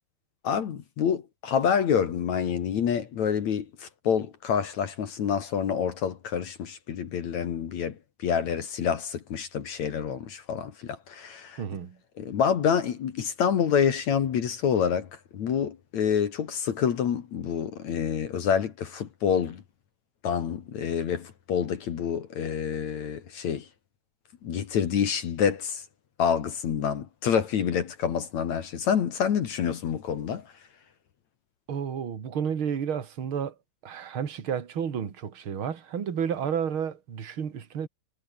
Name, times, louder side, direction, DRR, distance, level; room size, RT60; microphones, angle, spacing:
voice 1, 0.4-11.6 12.2-15.1 15.3-19.6 20.2-23.7 24.4-25.8 26.2-30.4, left 7 dB, 55° left, 2.5 m, -27 dB
voice 2, 11.6-12.0 31.7-33.5 33.8-37.9, right 7 dB, 40° right, 2.2 m, -31 dB
omnidirectional pair, 4.9 m